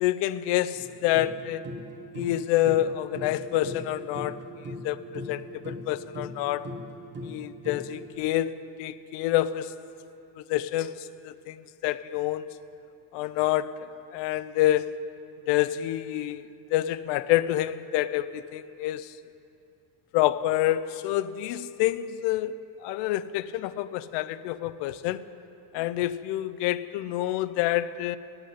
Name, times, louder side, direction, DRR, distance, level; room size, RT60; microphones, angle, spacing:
voice 1, 0.0-1.7 2.1-6.7 7.2-9.7 10.4-12.5 13.1-13.8 14.1-15.0 15.5-19.1 20.1-22.5 22.8-25.2 25.7-28.2, left 14 dB, 60° left, 0.5 m, -27 dB
sound 1, 0.8-8.1, equal, 25° right, 1.1 m, -40 dB
10.0 x 8.0 x 9.2 m
cardioid pair, 145°, 48 cm